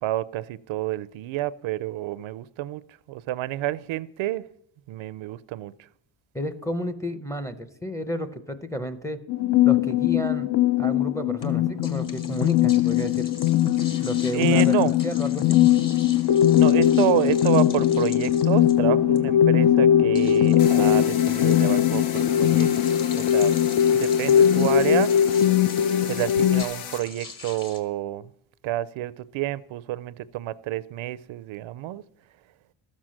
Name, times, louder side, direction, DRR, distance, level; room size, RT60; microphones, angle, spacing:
voice 1, 0.0-2.8 3.1-4.4 4.9-5.7 14.3-14.9 16.6-22.7 23.1-23.5 23.9-25.1 26.1-28.3 28.6-32.0, right 14 dB, 75° right, 0.5 m, -28 dB
voice 2, 6.3-9.2 9.6-10.5 10.8-13.3 14.0-14.7 15.0-15.6, equal, 5° left, 0.6 m, -31 dB
sound 1, 9.3-26.6, left 11 dB, 55° left, 0.5 m, -20 dB
sound 2, 11.4-27.8, left 4 dB, 40° left, 1.6 m, -43 dB
sound 3, 20.6-27.0, left 8 dB, 85° left, 1.1 m, -37 dB
13.0 x 7.5 x 6.3 m
cardioid pair, 145°, 48 cm